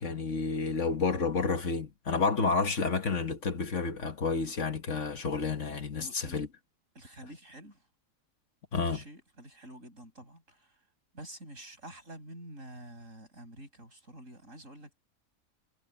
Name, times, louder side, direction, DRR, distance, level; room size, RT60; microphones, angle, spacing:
voice 1, 0.0-6.5 8.7-9.0, left 4 dB, 60° left, 1.8 m, -30 dB
voice 2, 6.0-6.4 6.9-7.8 8.9-10.8 11.1-15.1, right 1 dB, 65° right, 8.4 m, -48 dB
omnidirectional pair, 1.5 m